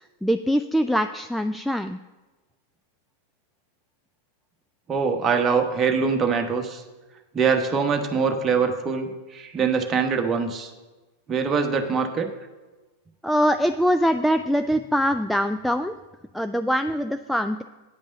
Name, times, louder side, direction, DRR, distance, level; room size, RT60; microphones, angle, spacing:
voice 1, 0.0-2.0 13.2-16.0 16.3-17.6, equal, ahead, 8 dB, 0.3 m, -23 dB
voice 2, 4.9-6.8 7.3-10.7 11.3-12.3, right 5 dB, 25° right, 4 dB, 1.2 m, -23 dB
9.5 x 5.4 x 6.7 m, 1.2 s
figure-of-eight pair, 90°, 0 cm